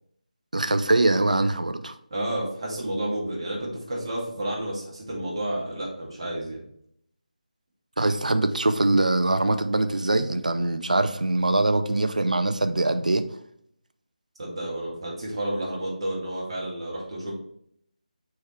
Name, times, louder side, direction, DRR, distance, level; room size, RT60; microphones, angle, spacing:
voice 1, 0.5-2.0 8.0-13.2, right 2 dB, 65° right, 0.6 m, -23 dB
voice 2, 2.1-6.6 14.4-17.3, right 1 dB, 40° right, 2.2 m, -31 dB
6.4 x 4.8 x 3.2 m
figure-of-eight pair, 160°, 4 cm